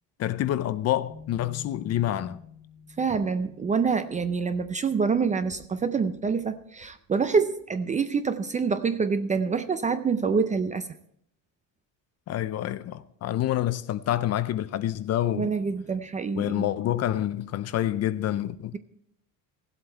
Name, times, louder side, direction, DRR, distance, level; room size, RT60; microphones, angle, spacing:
voice 1, 0.2-2.4 12.3-15.5 16.4-18.8, left 12 dB, 40° left, 0.5 m, -27 dB
sound 1, 1.0-7.6, left 5 dB, 80° right, 2.1 m, -49 dB
voice 2, 3.0-10.9 15.4-16.7, right 5 dB, 20° right, 0.4 m, -26 dB
16.0 x 7.9 x 4.4 m
cardioid pair, 145°, 39 cm